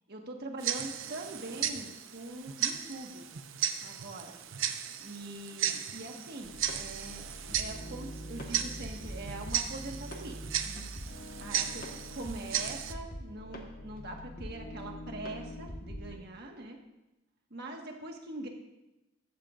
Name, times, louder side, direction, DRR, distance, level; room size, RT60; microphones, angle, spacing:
voice 1, 0.1-3.2 3.8-4.3 5.0-7.3 7.5-10.8 11.4-16.8 17.5-18.5, right 2 dB, 50° right, 2 dB, 1.6 m, -43 dB
Tick-tock, 0.6-12.9, right 9 dB, 65° right, 0.7 m, -36 dB
sound 1, 6.4-16.2, equal, 40° left, 1.5 m, -43 dB
14.5 x 13.5 x 2.6 m, 0.96 s
head